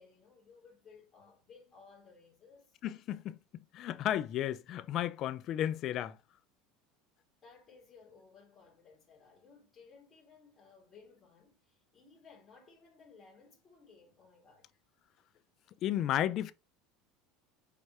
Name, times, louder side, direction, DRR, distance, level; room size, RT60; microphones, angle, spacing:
voice 1, 0.0-2.8 7.4-14.8, left 5 dB, 15° left, 1.9 m, -59 dB
voice 2, 2.8-6.2 15.8-16.5, left 12 dB, 35° left, 0.3 m, -33 dB
4.6 x 3.3 x 2.7 m
cardioid pair, 165°, 0 cm